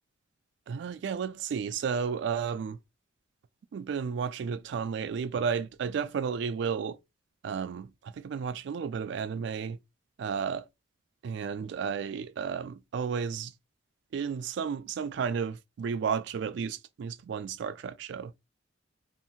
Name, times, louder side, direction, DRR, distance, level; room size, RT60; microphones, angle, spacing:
voice 1, 0.7-2.8 3.7-7.0 7.4-9.8 10.2-10.7 11.2-13.5 14.1-18.3, right 6 dB, 65° right, 0.3 m, -32 dB
2.8 x 2.7 x 2.4 m
head